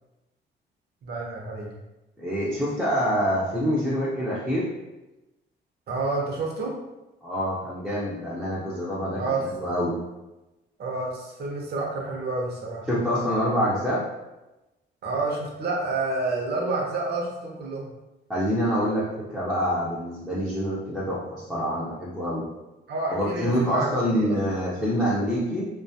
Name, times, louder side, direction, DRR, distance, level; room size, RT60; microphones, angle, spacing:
voice 1, 1.0-1.7 5.9-6.7 9.2-9.4 10.8-12.9 15.0-17.9 22.9-24.3, right 3 dB, 55° right, -1 dB, 0.7 m, -29 dB
voice 2, 2.2-4.7 7.2-10.0 12.9-14.0 18.3-22.5 23.1-25.7, equal, ahead, -8 dB, 0.5 m, -26 dB
2.4 x 2.3 x 2.6 m, 1.0 s
cardioid pair, 90°, 20 cm